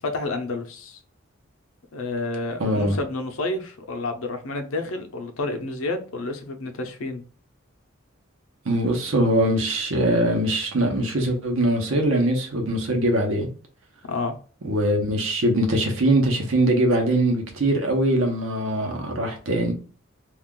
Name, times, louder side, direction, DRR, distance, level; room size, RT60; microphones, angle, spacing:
voice 1, 0.1-1.0 1.9-7.2 14.0-14.4, left 2 dB, 80° left, 0.6 m, -30 dB
voice 2, 2.6-3.0 8.6-13.5 14.6-19.7, right 1 dB, 80° right, 0.8 m, -22 dB
2.4 x 2.2 x 3.7 m
head